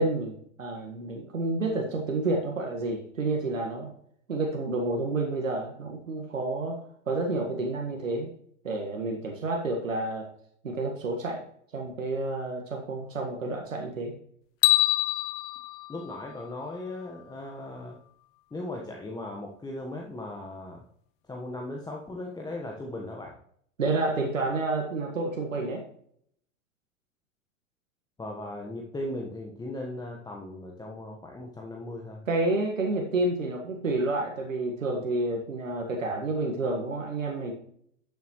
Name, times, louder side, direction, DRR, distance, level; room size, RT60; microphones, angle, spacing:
voice 1, 0.0-3.9 4.3-6.8 7.1-8.3 8.6-10.3 10.6-11.4 11.7-14.1 23.8-25.8 32.3-37.5, right 2 dB, 85° right, 1 dB, 1.7 m, -29 dB
sound 1, 14.6-16.9, left 17 dB, 35° left, 0.6 m, -26 dB
voice 2, 15.9-18.0 18.5-20.8 21.2-23.4 28.2-32.3, left 1 dB, 10° left, 0 dB, 1.3 m, -38 dB
12.0 x 7.3 x 3.1 m, 0.66 s
hypercardioid pair, 100°, 38 cm